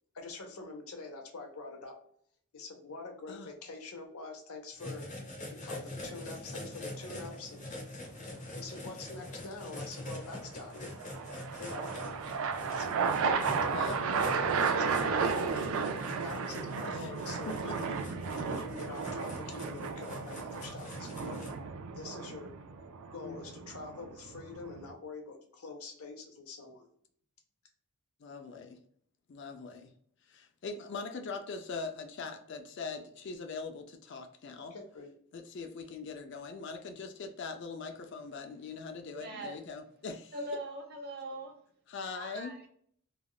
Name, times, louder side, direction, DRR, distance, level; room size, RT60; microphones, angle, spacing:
voice 1, 0.1-1.9 2.5-5.1 5.6-7.7 8.6-10.9 11.6-12.2 12.7-15.7 16.2-17.9 18.4-21.4 22.0-22.5 23.1-26.9 34.7-35.1, left 3 dB, 80° left, 3 dB, 0.8 m, -45 dB
sound 1, 4.8-21.5, left 1 dB, 35° left, 0.8 m, -44 dB
sound 2, 6.0-6.5 10.3-24.9, right 5 dB, 70° right, 0.4 m, -34 dB
voice 2, 17.5-17.8 23.2-23.4 28.2-28.8 29.3-29.9 30.3-34.7 35.3-40.3 41.9-42.6, left 4 dB, 55° left, 5 dB, 0.4 m, -41 dB
voice 3, 39.1-39.6 40.3-41.6 42.1-42.7, right 1 dB, 45° right, 2 dB, 0.7 m, -41 dB
3.4 x 2.3 x 2.3 m, 0.62 s
head